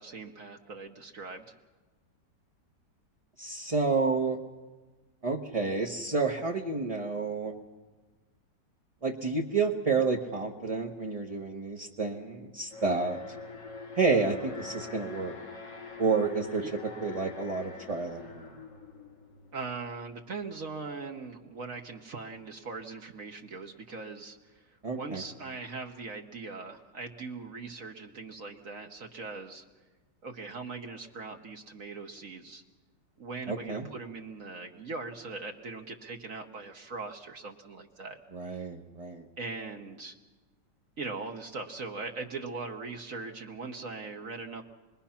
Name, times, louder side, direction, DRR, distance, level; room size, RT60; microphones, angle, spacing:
voice 1, 0.0-1.5 16.6-16.7 19.5-29.6 30.2-32.6 33.2-38.2 39.4-40.1 41.0-44.6, right 4 dB, 50° right, 3 dB, 1.4 m, -40 dB
voice 2, 3.4-4.4 5.2-7.5 9.0-13.2 13.9-15.4 16.0-16.6 17.0-18.5 24.8-25.2 33.5-33.8 38.3-39.3, right 4 dB, 25° right, 0 dB, 0.9 m, -30 dB
Alarm, 12.7-19.8, left 4 dB, 75° left, 2.3 m, -44 dB
27.5 x 21.0 x 5.8 m, 1.3 s
omnidirectional pair, 1.9 m